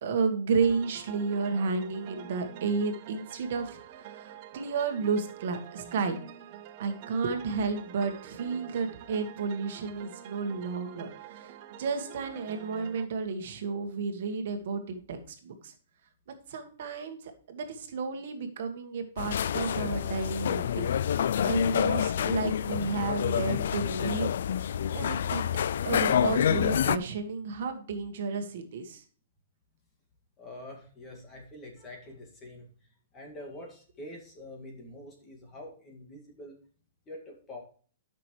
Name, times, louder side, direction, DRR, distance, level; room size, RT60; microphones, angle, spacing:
voice 1, 0.0-6.2 6.8-15.7 16.5-17.2 17.5-20.9 21.4-24.3 24.9-25.4 25.8-29.0, right 5 dB, 55° right, 6 dB, 1.6 m, -32 dB
sound 1, 0.6-13.1, right 10 dB, 35° right, 0.7 m, -47 dB
sound 2, 19.2-27.0, left 9 dB, 65° left, 0.4 m, -28 dB
voice 2, 30.4-32.7 33.1-36.6 37.1-37.6, left 1 dB, 15° left, 1 dB, 1.9 m, -45 dB
12.5 x 6.1 x 3.1 m, 0.43 s
hypercardioid pair, 170°, 0 cm